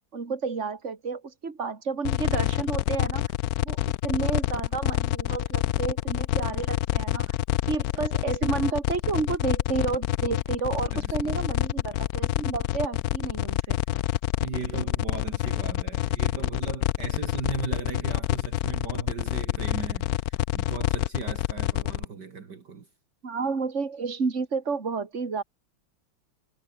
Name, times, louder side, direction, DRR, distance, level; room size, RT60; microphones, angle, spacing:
voice 1, 0.1-3.2 3.6-7.3 7.7-13.8 23.2-25.4, right 5 dB, 35° right, 2.9 m, -31 dB
sound 1, 2.0-22.0, left 15 dB, 80° left, 0.8 m, -27 dB
voice 2, 10.9-11.4 14.3-22.9, right 5 dB, 55° right, 2.7 m, -37 dB
omnidirectional pair, 2.2 m